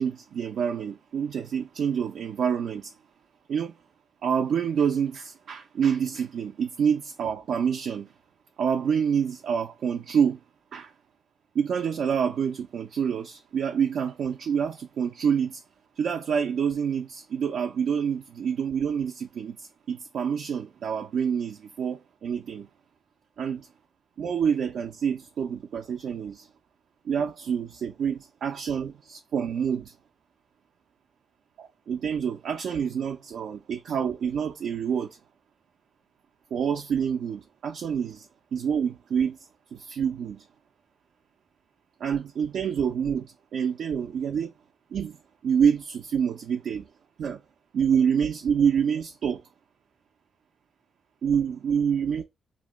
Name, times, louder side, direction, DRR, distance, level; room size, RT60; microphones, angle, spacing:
voice 1, 0.0-2.9 3.5-3.8 4.2-8.1 8.6-10.4 10.7-10.9 11.5-15.6 16.0-22.7 23.4-23.7 24.2-26.5 27.0-29.9 31.6-35.2 36.5-39.4 39.7-40.5 42.0-44.5 44.9-45.2 45.4-46.9 47.2-47.4 47.7-49.4 51.2-52.2, right 7 dB, 70° right, 0.3 m, -27 dB
2.5 x 2.1 x 3.5 m
supercardioid pair, 65°, 0 cm